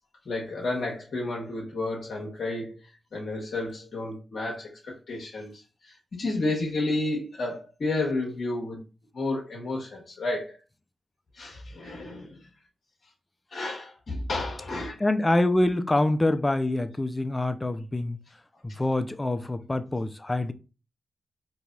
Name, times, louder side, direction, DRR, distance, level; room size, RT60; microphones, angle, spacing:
voice 1, 0.3-2.8 3.1-8.8 9.1-10.6 11.3-12.4 13.5-15.1, left 2 dB, 65° left, 0.9 m, -31 dB
voice 2, 15.0-18.2 18.6-20.5, left 1 dB, 25° left, 0.4 m, -25 dB
4.0 x 2.8 x 2.3 m
supercardioid pair, 40°, 0 cm